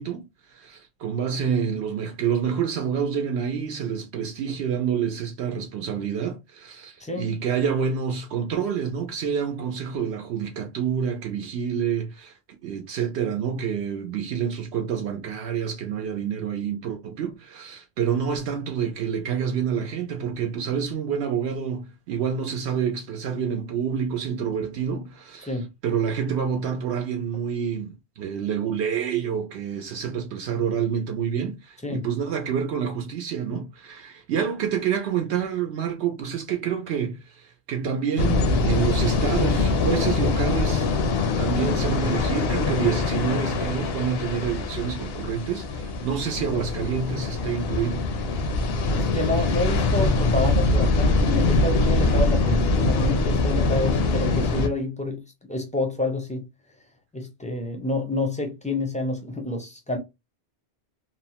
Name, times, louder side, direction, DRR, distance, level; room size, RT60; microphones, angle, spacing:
voice 1, 0.0-12.4 12.6-40.9 41.4-48.1 52.0-52.2, right 7 dB, 80° right, 0.9 m, -28 dB
sound 1, 38.2-54.7, left 3 dB, 70° left, 0.8 m, -23 dB
voice 2, 48.9-55.2 55.5-56.5 57.1-60.0, left 2 dB, 10° left, 0.4 m, -28 dB
2.9 x 2.0 x 2.8 m
omnidirectional pair, 1.1 m